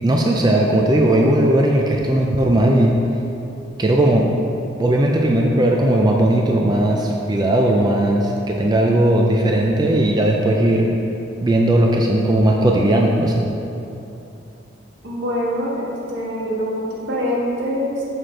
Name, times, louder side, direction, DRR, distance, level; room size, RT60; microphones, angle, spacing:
voice 1, 0.0-2.9 3.8-4.2 4.8-10.9 11.4-13.4, right 1 dB, 20° right, 0 dB, 0.4 m, -17 dB
voice 2, 15.0-18.0, equal, 75° right, -5 dB, 1.6 m, -24 dB
6.7 x 6.3 x 3.8 m, 2.8 s
head